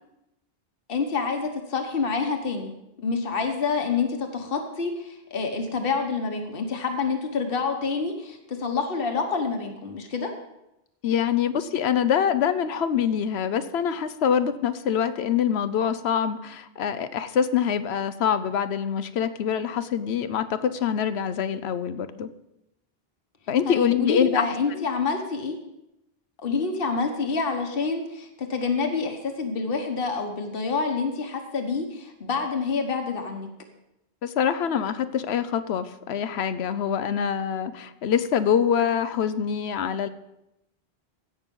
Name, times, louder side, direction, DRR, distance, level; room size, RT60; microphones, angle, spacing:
voice 1, 0.9-2.7 3.0-10.3 23.7-25.6 26.4-33.5, left 4 dB, 60° left, 4 dB, 1.4 m, -27 dB
voice 2, 11.0-22.3 23.5-24.8 34.2-40.1, left 8 dB, 90° left, 12 dB, 1.0 m, -25 dB
16.5 x 6.2 x 5.3 m, 0.88 s
omnidirectional pair, 1.0 m